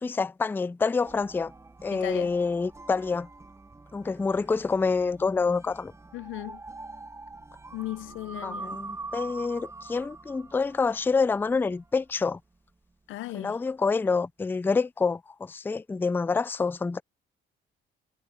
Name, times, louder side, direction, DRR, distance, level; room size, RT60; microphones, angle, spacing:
voice 1, 0.0-1.5 1.8-3.3 3.9-5.9 8.4-12.4 13.3-17.0, left 4 dB, 10° left, 0.3 m, -27 dB
sound 1, 1.0-12.1, right 3 dB, 15° right, 0.8 m, -44 dB
voice 2, 1.9-2.3 6.1-6.6 7.7-8.8 13.1-13.5, left 17 dB, 80° left, 0.5 m, -36 dB
cardioid pair, 90°, 20 cm